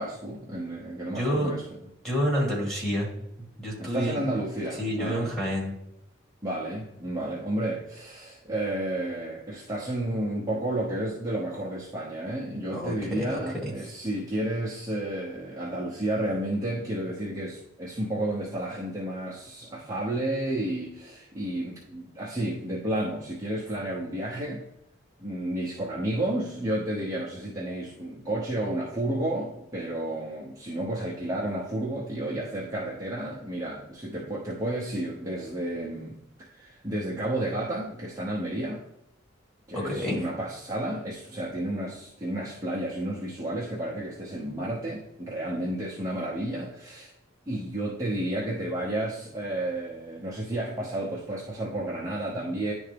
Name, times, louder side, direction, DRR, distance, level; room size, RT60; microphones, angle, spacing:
voice 1, 0.0-1.6 3.8-5.3 6.4-24.6 25.2-38.8 39.7-47.1 47.5-52.7, right 1 dB, 15° right, -6 dB, 1.0 m, -31 dB
voice 2, 1.1-1.5 2.0-3.1 3.6-4.2 4.8-5.8 12.7-13.7 39.7-40.3, equal, ahead, -5 dB, 2.0 m, -28 dB
10.5 x 3.5 x 3.4 m, 0.84 s
head